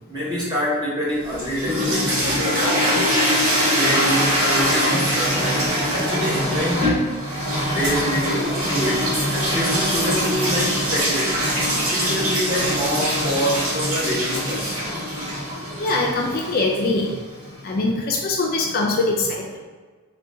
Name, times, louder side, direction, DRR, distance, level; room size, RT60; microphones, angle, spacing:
voice 1, 0.1-2.8 3.2-3.4 3.8-7.1 7.7-9.1 9.3-11.4 11.9-14.8, equal, 20° right, -6 dB, 0.9 m, -26 dB
sound 1, 1.2-17.2, equal, 70° right, 1.0 m, -23 dB
voice 2, 15.8-17.2 17.6-19.6, left 2 dB, 40° left, 0 dB, 0.4 m, -22 dB
3.7 x 2.2 x 3.8 m, 1.4 s
head